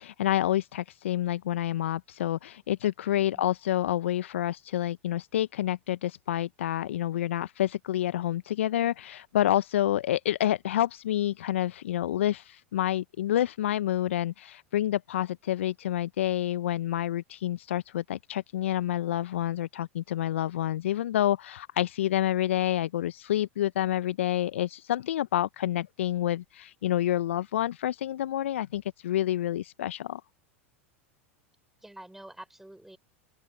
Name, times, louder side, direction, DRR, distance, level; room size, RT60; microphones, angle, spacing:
voice 1, 0.0-30.2, left 12 dB, 70° left, 1.1 m, -28 dB
voice 2, 3.1-3.5 31.8-33.0, right 1 dB, 5° right, 5.1 m, -48 dB
open air
figure-of-eight pair, 90°, 7 cm